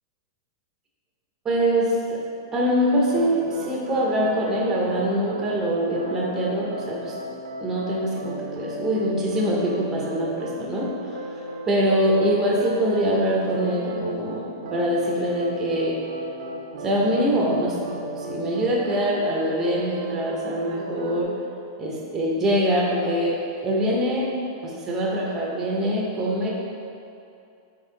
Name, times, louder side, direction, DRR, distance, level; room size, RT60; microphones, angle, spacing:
voice 1, 1.4-2.2 2.5-7.2 7.6-16.0 16.8-21.3 21.8-24.3 24.6-26.5, equal, 20° right, -3 dB, 0.6 m, -24 dB
sound 1, 3.1-5.5 5.9-21.2, right 1 dB, 70° right, 0.6 m, -35 dB
4.3 x 3.0 x 3.7 m, 2.6 s
hypercardioid pair, 135°, 2 cm